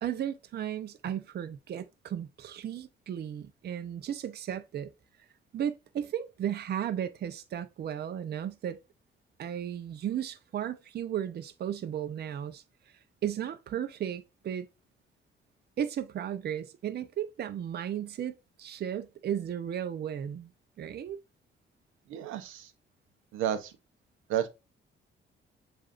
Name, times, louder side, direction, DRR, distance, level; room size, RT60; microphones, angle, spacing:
voice 1, 0.0-4.9 5.5-8.8 9.4-12.6 13.2-14.7 15.8-20.5 20.8-21.2, right 9 dB, 55° right, 0.6 m, -35 dB
voice 2, 22.1-22.7 23.3-23.7 24.3-24.5, right 10 dB, 90° right, 0.7 m, -31 dB
7.5 x 2.6 x 2.5 m
cardioid pair, 90°, 20 cm